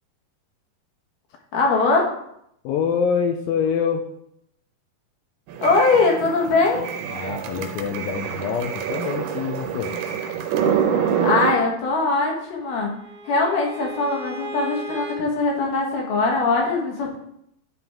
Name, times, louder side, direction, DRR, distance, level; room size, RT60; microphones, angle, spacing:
voice 1, 1.5-2.1 5.6-6.9 11.2-12.9 13.3-17.2, left 3 dB, 65° left, 0 dB, 2.6 m, -21 dB
voice 2, 2.6-4.0 7.1-9.9, left 7 dB, 80° left, 6 dB, 2.2 m, -25 dB
sound 1, 5.5-11.6, right 8 dB, 85° right, 2.8 m, -26 dB
Bowed string instrument, 12.1-15.2, right 1 dB, 55° right, 1.2 m, -37 dB
11.0 x 4.5 x 3.5 m, 0.75 s
omnidirectional pair, 4.5 m